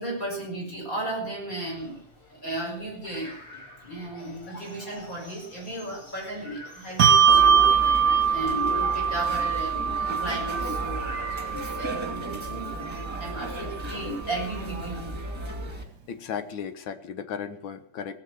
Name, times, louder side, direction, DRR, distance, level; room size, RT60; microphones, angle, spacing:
voice 1, 0.0-2.0 2.3-8.0 8.3-15.2, right 1 dB, 40° left, 0 dB, 6.4 m, -35 dB
sound 1, 1.8-11.5, left 2 dB, 90° left, 5.2 m, -47 dB
Bell, 7.0-13.9, right 7 dB, 55° right, 1.4 m, -23 dB
sound 2, 7.3-15.8, right 1 dB, 15° right, 1.9 m, -35 dB
voice 2, 16.1-18.2, left 7 dB, 65° left, 10 dB, 1.8 m, -35 dB
17.5 x 7.7 x 7.7 m, 0.65 s
omnidirectional pair, 2.4 m